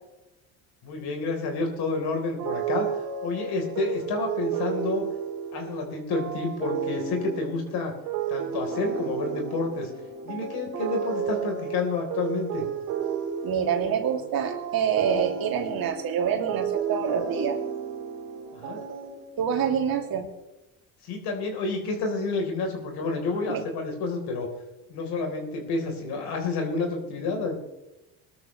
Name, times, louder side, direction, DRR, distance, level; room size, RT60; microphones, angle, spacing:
voice 1, 0.8-2.9 3.2-5.0 5.5-7.9 8.3-9.9 10.2-12.7 18.5-18.8 21.0-24.5 24.9-27.6, left 3 dB, 70° left, 2 dB, 4.1 m, -29 dB
sound 1, 2.4-19.6, right 7 dB, 90° right, 4.0 m, -32 dB
voice 2, 13.4-17.6 19.4-20.3 23.5-23.6, right 7 dB, 60° right, 2 dB, 2.9 m, -26 dB
21.5 x 12.5 x 3.3 m, 0.97 s
supercardioid pair, 85°, 40 cm